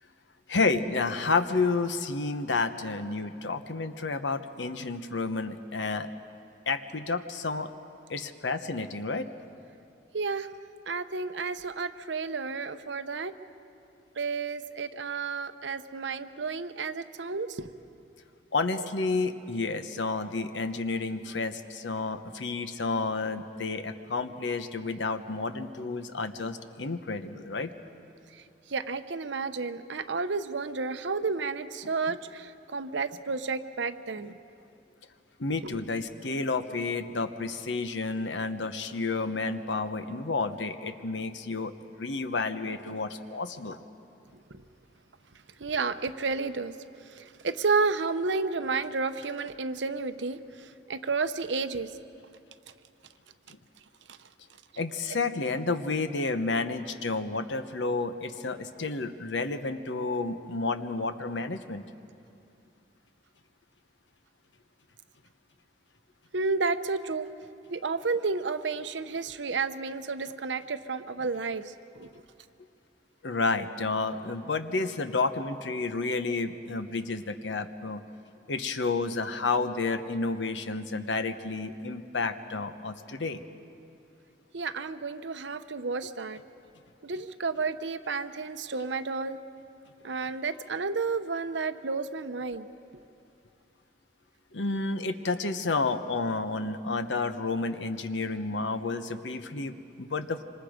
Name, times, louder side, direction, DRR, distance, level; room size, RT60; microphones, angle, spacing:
voice 1, 0.5-6.1 6.7-7.7 8.1-9.3 18.5-27.7 32.1-32.2 35.4-41.7 42.0-43.8 54.8-61.8 73.2-78.0 78.5-83.4 94.5-100.4, left 3 dB, 85° left, 9 dB, 1.1 m, -30 dB
voice 2, 10.1-10.5 10.9-13.3 14.2-17.7 28.7-34.3 45.6-46.7 47.1-51.9 66.3-67.3 67.7-72.1 84.5-86.4 87.0-89.4 90.0-92.7, right 4 dB, 85° right, 10 dB, 0.8 m, -31 dB
26.0 x 26.0 x 5.1 m, 2.6 s
head